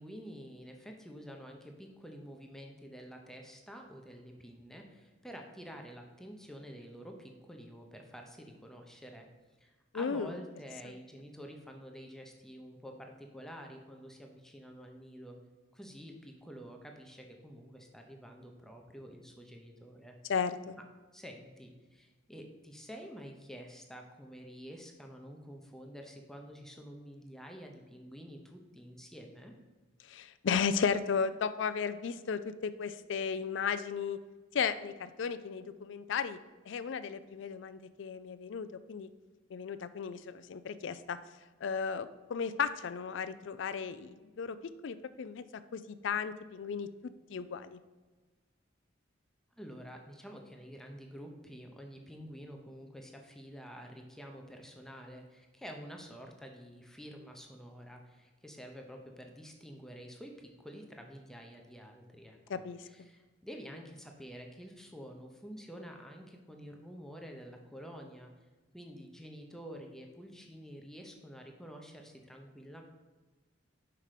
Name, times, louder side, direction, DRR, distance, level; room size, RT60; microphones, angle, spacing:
voice 1, 0.0-9.3 9.6-15.4 15.7-20.2 21.1-29.5 49.6-68.3 68.7-72.8, equal, ahead, 2 dB, 0.7 m, -49 dB
voice 2, 9.9-10.3 20.3-20.8 30.0-34.2 34.5-36.4 36.7-39.1 39.5-41.2 41.6-44.6 44.8-45.5 45.7-46.9 47.3-47.8 62.5-62.8, left 6 dB, 65° left, 13 dB, 0.4 m, -34 dB
5.8 x 5.0 x 4.9 m, 1.3 s
head